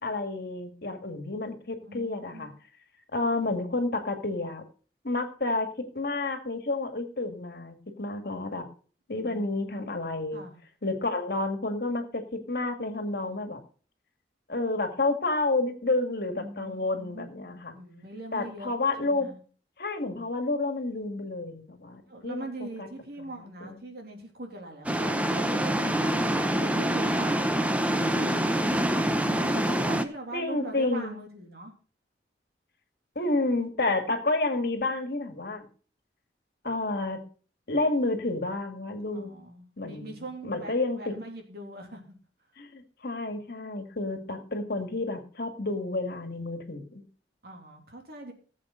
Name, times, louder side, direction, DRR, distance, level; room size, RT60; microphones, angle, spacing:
voice 1, 0.0-2.5 3.1-4.6 5.0-5.7 5.9-8.7 9.1-10.4 10.8-13.6 14.5-17.7 18.3-19.3 19.8-22.5 22.8-22.9 23.6-23.8 29.2-29.8 30.3-31.2 33.2-35.7 36.6-37.2 37.7-39.3 39.8-41.1 42.6-47.0, left 2 dB, 60° left, 6 dB, 2.0 m, -30 dB
voice 2, 1.8-2.5 9.1-9.9 10.3-10.6 13.0-13.4 16.3-17.3 17.7-18.7 19.0-19.4 22.1-26.2 26.6-27.4 27.8-28.4 29.8-31.7 39.1-42.2 44.1-44.7 47.4-48.3, right 1 dB, 60° right, 2 dB, 3.1 m, -42 dB
sound 1, 24.8-30.0, right 1 dB, 10° right, 0.8 m, -26 dB
17.0 x 7.6 x 3.9 m, 0.39 s
head